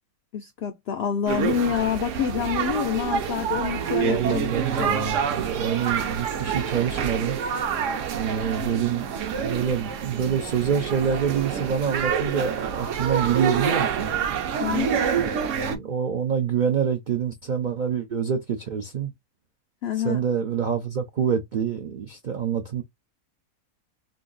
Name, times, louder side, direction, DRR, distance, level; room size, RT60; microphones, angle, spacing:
voice 1, 0.3-4.4 4.8-5.0 14.6-15.0 19.8-20.2, left 9 dB, 80° left, 0.5 m, -27 dB
sound 1, 1.3-15.8, right 7 dB, 65° right, 0.9 m, -27 dB
voice 2, 4.0-7.4 8.1-14.1 15.2-19.1 20.0-22.8, right 7 dB, 85° right, 0.4 m, -26 dB
2.7 x 2.5 x 3.8 m
omnidirectional pair, 1.6 m